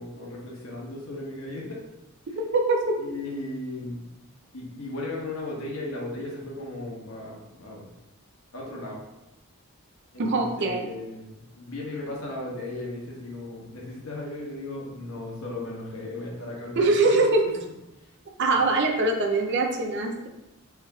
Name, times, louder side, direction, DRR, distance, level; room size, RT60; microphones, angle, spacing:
voice 1, 0.0-1.8 2.3-2.4 3.0-4.1 4.5-7.9 8.5-9.0 10.1-17.3 18.0-18.1 18.5-18.6, left 2 dB, 70° left, -3 dB, 1.1 m, -36 dB
voice 2, 2.4-3.1 10.2-10.9 16.8-17.4 18.4-20.3, right 2 dB, 55° right, 2 dB, 0.5 m, -23 dB
3.4 x 3.1 x 3.3 m, 0.94 s
head